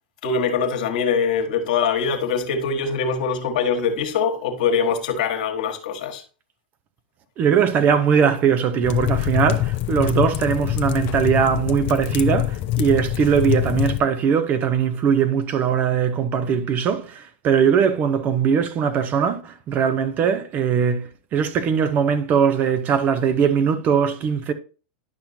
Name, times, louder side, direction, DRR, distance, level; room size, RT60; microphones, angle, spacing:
voice 1, 0.2-6.2, left 6 dB, 60° left, 1.4 m, -23 dB
voice 2, 7.4-24.5, right 7 dB, 35° right, 0.7 m, -20 dB
sound 1, 8.8-14.0, left 15 dB, 45° left, 0.6 m, -24 dB
10.5 x 5.7 x 2.7 m
hypercardioid pair, 100°, 5 cm